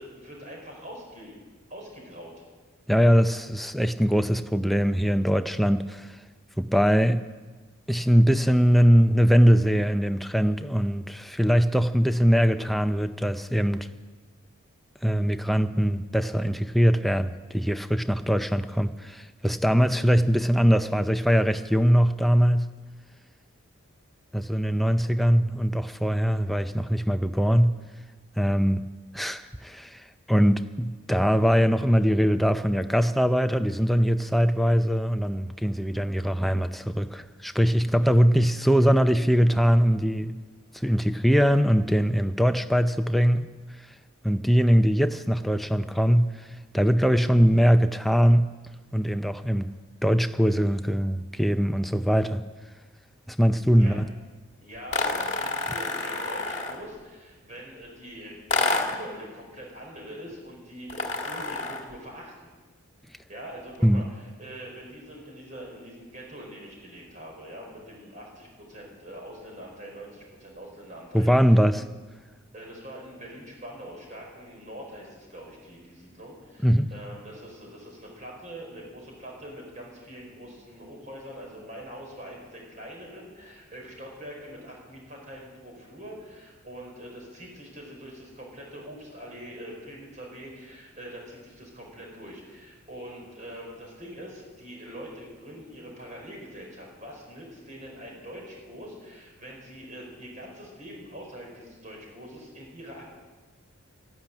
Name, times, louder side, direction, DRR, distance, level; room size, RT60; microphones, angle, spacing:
voice 1, 0.0-1.4 1.7-2.3 53.8-54.0 54.6-62.5 63.1-71.6 72.5-103.0, equal, 35° right, -1 dB, 4.6 m, -43 dB
voice 2, 2.9-6.2 6.6-7.2 7.9-13.9 15.0-22.7 24.3-27.8 28.4-28.8 29.1-40.4 40.7-43.5 43.8-43.9 44.2-46.5 46.7-48.5 48.9-49.7 50.0-52.4 53.3-54.1 63.8-64.0 71.1-71.8 76.6-76.9, equal, ahead, 9 dB, 0.5 m, -22 dB
sound 1, 54.9-56.9 58.5-59.1 60.9-61.9, left 2 dB, 30° left, 1.6 m, -28 dB
13.5 x 11.5 x 9.0 m, 1.3 s
head